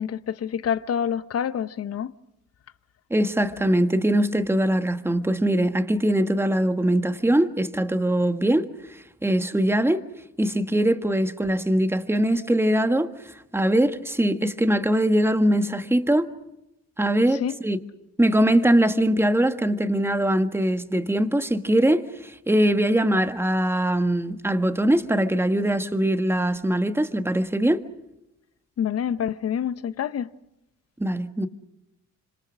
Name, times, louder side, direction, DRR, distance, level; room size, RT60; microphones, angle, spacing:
voice 1, 0.0-2.1 17.3-17.5 28.8-30.3, left 8 dB, 50° left, 0.9 m, -27 dB
voice 2, 3.1-8.7 9.2-10.0 10.4-13.1 13.5-16.3 17.0-17.8 18.2-27.8 31.0-31.5, right 1 dB, 10° right, 1.6 m, -22 dB
26.5 x 26.0 x 6.3 m
cardioid pair, 90°, 30 cm